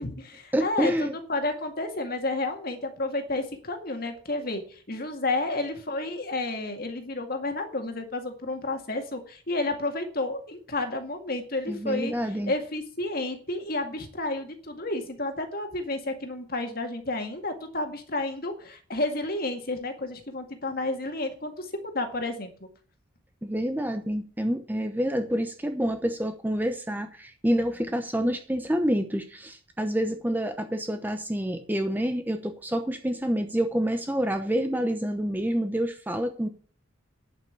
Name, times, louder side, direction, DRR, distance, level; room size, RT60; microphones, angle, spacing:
voice 1, 0.0-12.1 12.5-22.7, left 2 dB, 45° left, 6 dB, 2.0 m, -31 dB
voice 2, 0.5-1.1 11.7-12.5 23.4-36.5, equal, 10° right, 7 dB, 0.8 m, -28 dB
11.0 x 5.9 x 8.2 m, 0.42 s
head